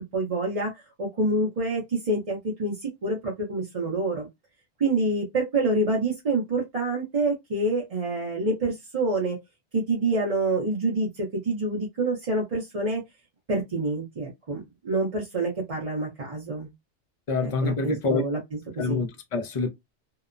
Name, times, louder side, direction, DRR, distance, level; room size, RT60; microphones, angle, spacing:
voice 1, 0.1-0.7 1.0-4.3 4.8-9.4 9.7-13.0 13.5-16.7 17.4-18.4 18.8-19.0, right 2 dB, 35° right, 0.6 m, -27 dB
voice 2, 17.3-18.2 18.8-19.7, left 4 dB, 45° left, 0.4 m, -26 dB
2.9 x 2.0 x 2.4 m
omnidirectional pair, 1.2 m